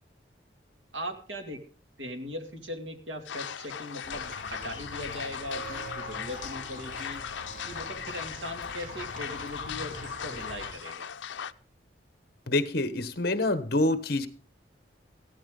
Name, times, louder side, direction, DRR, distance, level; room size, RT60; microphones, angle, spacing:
voice 1, 0.9-1.6 2.0-7.2 7.6-11.1, left 1 dB, 80° right, 4 dB, 2.5 m, -39 dB
sound 1, 3.3-11.5, left 8 dB, 80° left, 0.6 m, -38 dB
Walk footsteps / Bell, 4.0-10.7, equal, 45° right, 6.2 m, -43 dB
voice 2, 12.5-14.3, left 2 dB, 55° left, 11 dB, 1.2 m, -26 dB
15.5 x 13.5 x 3.8 m, 0.39 s
head